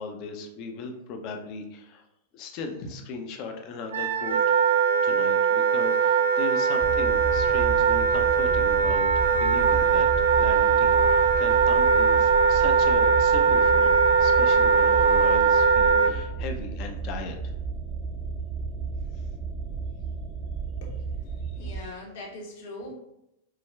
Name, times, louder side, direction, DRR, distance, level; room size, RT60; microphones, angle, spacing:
voice 1, 0.0-2.0 2.3-4.4 5.0-10.1 10.4-17.4 21.4-21.9, left 4 dB, 45° left, 4 dB, 0.5 m, -37 dB
Wind instrument woodwind instrument, 3.9-16.1, right 5 dB, 80° right, 0.4 m, -21 dB
sound 1, 6.8-21.8, right 5 dB, 15° right, 0.5 m, -33 dB
voice 2, 20.8-21.2 21.6-22.9, left 2 dB, 65° left, -2 dB, 1.0 m, -41 dB
4.6 x 2.3 x 2.2 m, 0.85 s
hypercardioid pair, 100°, 0 cm